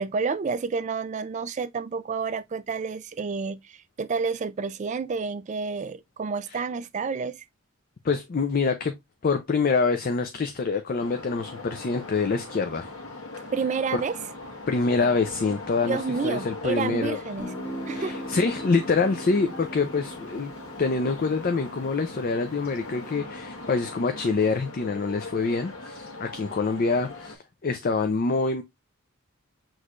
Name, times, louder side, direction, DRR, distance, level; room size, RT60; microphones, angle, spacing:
voice 1, 0.0-7.4 13.5-14.2 15.9-17.5 17.9-18.2, right 5 dB, 30° right, 0.3 m, -29 dB
voice 2, 8.0-8.9 9.2-12.9 13.9-14.0 14.7-17.2 17.9-20.5 20.8-28.6, left 4 dB, 40° left, 0.4 m, -26 dB
sound 1, 11.0-27.4, left 2 dB, 60° left, 1.4 m, -40 dB
Guitar, 17.4-22.9, right 1 dB, 20° left, 1.2 m, -40 dB
6.3 x 3.1 x 2.4 m
head